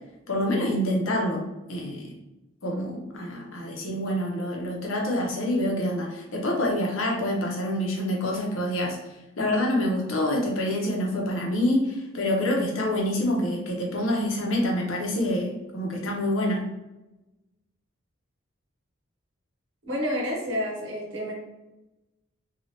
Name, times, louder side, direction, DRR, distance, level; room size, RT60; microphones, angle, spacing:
voice 1, 0.3-1.4 1.7-2.1 2.6-9.0 9.4-16.6, left 1 dB, 75° left, -1 dB, 0.7 m, -26 dB
voice 2, 19.8-21.3, equal, 65° right, -2 dB, 0.9 m, -29 dB
3.0 x 2.3 x 2.7 m, 1.0 s
head